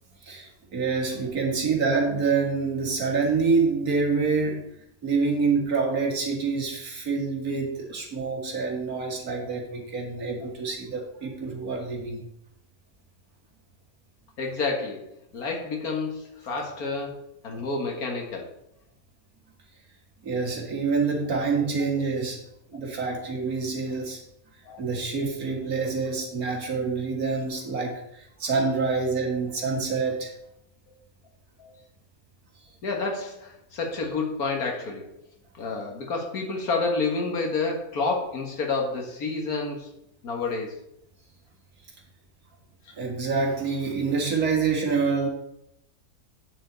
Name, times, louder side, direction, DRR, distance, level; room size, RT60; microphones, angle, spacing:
voice 1, 0.2-4.6 5.0-12.2 20.2-22.4 22.7-24.2 24.8-30.3 43.0-45.3, right 4 dB, 80° right, 1 dB, 2.3 m, -26 dB
voice 2, 14.4-18.5 23.8-23.9 24.7-24.8 30.9-31.0 31.6-31.7 32.8-35.1 35.6-39.9 40.2-40.7 42.9-43.0, left 3 dB, 85° left, 1 dB, 2.1 m, -29 dB
8.9 x 6.9 x 4.0 m, 0.79 s
omnidirectional pair, 1.5 m